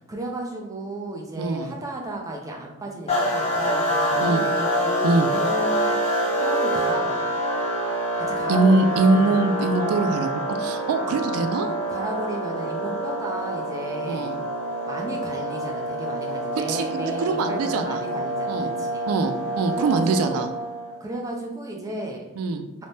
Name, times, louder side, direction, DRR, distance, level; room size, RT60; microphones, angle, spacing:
voice 1, 0.1-6.0 6.4-7.3 8.2-9.4 9.8-10.1 11.1-11.2 11.9-14.4 14.9-19.1 19.7-20.5 21.0-22.2, right 1 dB, 15° right, 0 dB, 0.4 m, -34 dB
voice 2, 1.4-1.7 4.2-4.4 5.0-5.3 8.5-11.7 14.0-14.4 16.7-18.0 18.5-18.7 19.1-20.5 22.4-22.7, right 3 dB, 90° right, 8 dB, 0.3 m, -23 dB
sound 1, 3.1-20.9, equal, 30° left, 0.7 m, -26 dB
3.3 x 2.1 x 2.6 m, 1.0 s
head